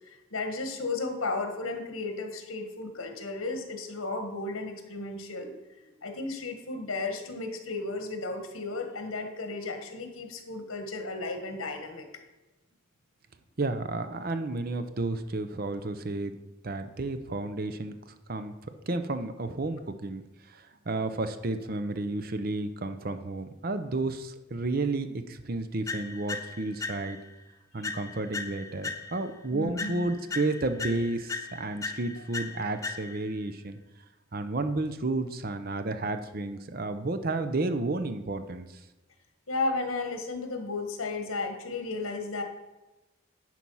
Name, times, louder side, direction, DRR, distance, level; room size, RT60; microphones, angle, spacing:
voice 1, 0.0-5.5 6.0-12.1 27.8-27.9 29.5-30.1 32.2-32.3 39.5-42.4, left 3 dB, 75° left, 5 dB, 1.4 m, -34 dB
voice 2, 13.6-16.3 16.6-18.5 18.9-27.2 27.7-33.8 34.3-38.7, right 2 dB, 45° right, 9 dB, 0.6 m, -32 dB
sound 1, 25.9-27.3 27.8-29.4 29.8-33.4, left 4 dB, 15° left, 0.4 m, -38 dB
10.5 x 4.5 x 5.5 m, 1.1 s
head